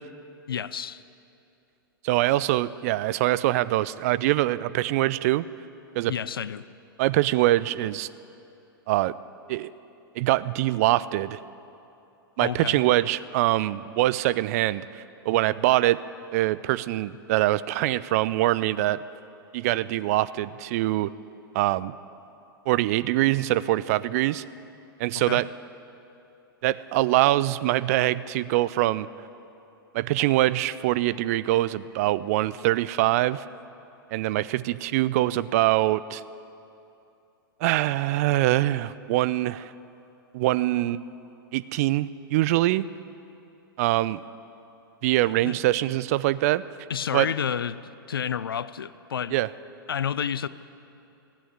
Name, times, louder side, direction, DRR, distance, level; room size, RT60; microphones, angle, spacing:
voice 1, 0.5-1.0 6.1-6.7 12.4-12.8 25.3-25.4 45.4-45.5 46.9-47.8 48.1-49.4 49.9-50.5, left 8 dB, 70° left, 17 dB, 0.4 m, -30 dB
voice 2, 2.0-5.4 6.0-6.1 7.0-8.1 8.9-9.1 9.5-9.7 10.2-11.4 12.4-16.0 16.3-19.0 19.5-21.1 21.5-21.9 22.7-24.4 25.0-25.5 26.6-29.1 29.9-33.4 34.1-36.2 37.6-39.7 40.3-41.0 41.5-42.8 43.8-44.2 45.0-46.6 47.1-47.3 49.3-49.5, right 16 dB, 40° right, 17 dB, 0.4 m, -24 dB
15.0 x 8.7 x 8.8 m, 2.8 s
figure-of-eight pair, 105°, 12 cm